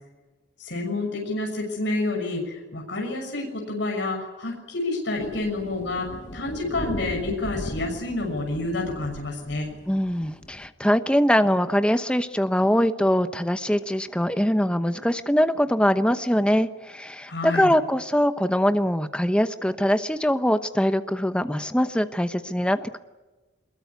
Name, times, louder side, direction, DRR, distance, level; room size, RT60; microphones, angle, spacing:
voice 1, 0.6-9.7 17.3-17.7, left 2 dB, 65° left, 1 dB, 6.4 m, -29 dB
sound 1, 5.2-10.7, left 1 dB, 40° left, 1.5 m, -38 dB
voice 2, 9.9-23.0, equal, 5° left, 10 dB, 0.9 m, -22 dB
23.5 x 22.0 x 9.5 m, 1.2 s
head